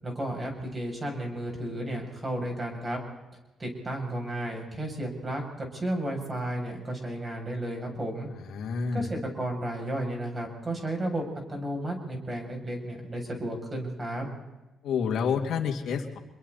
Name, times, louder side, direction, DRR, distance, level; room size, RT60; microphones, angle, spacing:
voice 1, 0.0-3.0 3.6-8.3 8.9-11.2 11.5-14.3, right 1 dB, 25° right, 1 dB, 7.4 m, -33 dB
voice 2, 8.5-9.1 14.8-16.2, left 6 dB, 70° left, 1 dB, 2.6 m, -29 dB
27.0 x 22.5 x 4.2 m, 1.1 s
cardioid pair, 90°, 0 cm